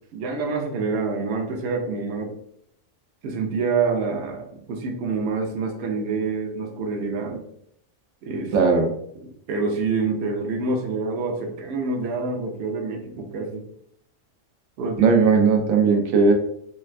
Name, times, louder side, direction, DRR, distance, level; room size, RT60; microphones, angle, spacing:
voice 1, 0.1-2.3 3.2-7.4 8.2-8.5 9.2-13.6 14.8-15.1, right 4 dB, 60° right, 1 dB, 0.8 m, -27 dB
voice 2, 8.5-8.9 15.0-16.3, right 4 dB, 90° right, 3 dB, 1.0 m, -17 dB
4.2 x 2.3 x 2.2 m, 0.70 s
omnidirectional pair, 1.4 m